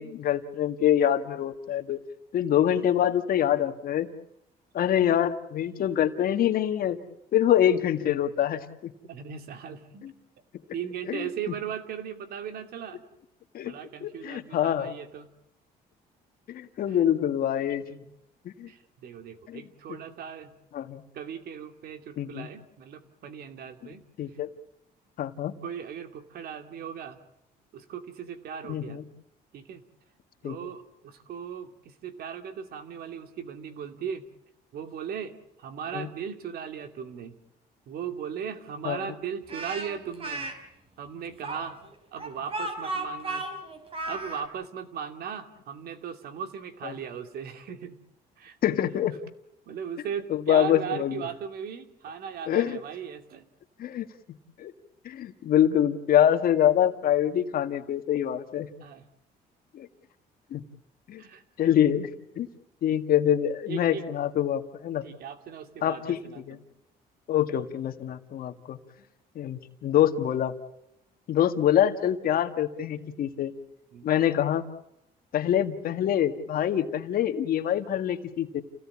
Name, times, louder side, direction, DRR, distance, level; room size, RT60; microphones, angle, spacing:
voice 1, 0.0-2.0 2.3-4.1 4.7-7.0 7.3-8.9 10.0-10.1 11.1-11.3 13.5-13.7 14.0-14.9 16.5-17.8 18.5-18.7 19.5-19.6 20.7-21.0 22.2-22.5 24.2-24.5 25.2-25.5 28.7-29.0 30.4-30.6 35.9-36.1 38.8-39.1 48.6-49.2 50.3-51.2 52.5-52.8 53.8-54.1 54.6-54.7 55.0-58.7 59.7-59.9 60.5-60.6 61.1-61.2 61.6-62.1 62.4-62.5 62.8-65.0 65.8-66.6 67.3-68.8 69.4-70.5 71.3-73.5 74.0-74.6 75.3-78.6, left 10 dB, 60° left, 7 dB, 1.8 m, -25 dB
voice 2, 9.0-10.1 10.7-13.0 13.6-15.3 17.9-18.1 18.7-20.5 21.1-24.0 25.6-27.2 27.7-29.0 29.5-29.8 30.4-34.3 34.7-37.4 37.9-40.5 41.0-41.8 42.1-43.5 44.1-48.0 48.4-48.6 49.7-53.5 58.8-59.1 61.2-61.7 63.7-64.0 65.0-66.6 73.9-74.1, right 8 dB, 65° right, 8 dB, 2.6 m, -38 dB
Speech, 39.5-40.5 41.4-44.4, right 2 dB, 35° right, 4.7 m, -34 dB
29.0 x 17.0 x 8.6 m, 0.82 s
cardioid pair, 110°, 17 cm